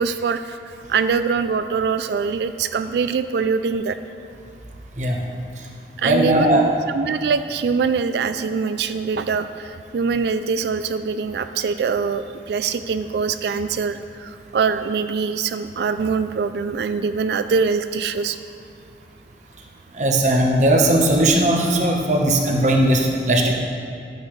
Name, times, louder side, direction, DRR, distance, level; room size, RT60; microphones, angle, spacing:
voice 1, 0.0-4.0 6.0-18.4 23.5-23.6, right 5 dB, 70° right, 11 dB, 0.3 m, -23 dB
voice 2, 6.0-6.7 19.9-23.5, right 1 dB, 40° right, 1 dB, 1.1 m, -18 dB
12.0 x 9.1 x 3.2 m, 2.5 s
head